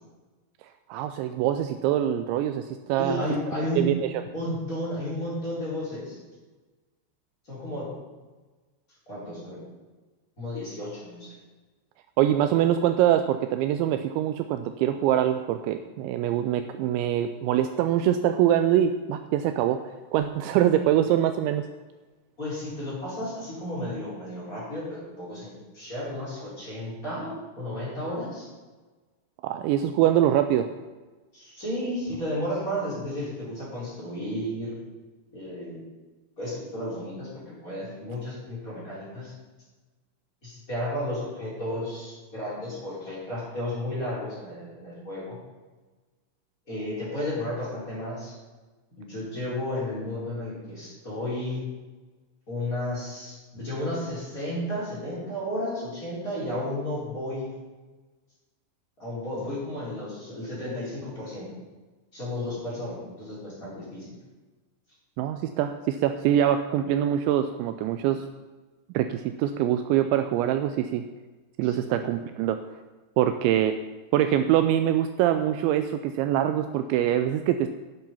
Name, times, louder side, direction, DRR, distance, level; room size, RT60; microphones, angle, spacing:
voice 1, 0.9-3.2 3.8-4.1 12.2-19.8 20.1-21.7 29.4-30.7 65.2-68.2 68.9-71.0 71.6-72.6 73.2-73.8 74.1-77.7, right 11 dB, 90° right, 8 dB, 2.6 m, -24 dB
voice 2, 3.0-3.8 4.3-6.2 7.4-7.9 9.1-9.6 10.4-11.3 22.4-28.5 31.3-34.7 35.3-35.8 36.4-39.3 40.4-45.4 46.7-48.3 49.0-51.6 52.5-57.5 59.0-61.5 62.1-64.1 71.6-72.0, left 1 dB, 15° left, -7 dB, 4.9 m, -33 dB
12.0 x 9.7 x 5.6 m, 1.3 s
omnidirectional pair, 5.8 m